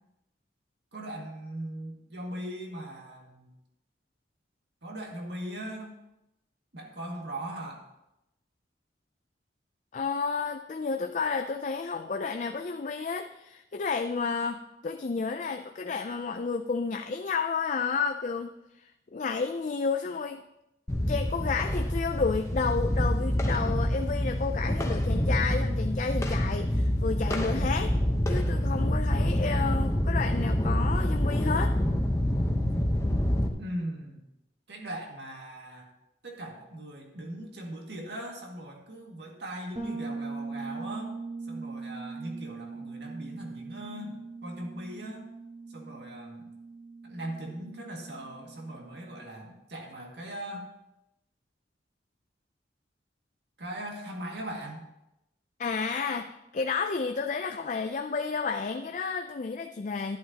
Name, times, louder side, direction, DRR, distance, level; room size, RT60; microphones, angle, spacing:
voice 1, 0.9-3.5 4.8-6.0 6.7-7.9 33.6-34.2 34.7-35.9 36.2-41.1 41.4-45.3 45.7-46.5 47.0-50.7 53.6-54.9, right 1 dB, 70° right, 0 dB, 2.0 m, -39 dB
voice 2, 9.9-18.5 18.8-20.4 21.1-28.0 28.3-31.8 55.6-60.2, left 5 dB, 40° left, 5 dB, 0.4 m, -31 dB
sound 1, 20.9-33.5, equal, 15° left, 0.9 m, -27 dB
Bass guitar, 39.7-49.4, right 3 dB, 35° right, 1.8 m, -41 dB
11.5 x 11.0 x 2.9 m, 0.90 s
head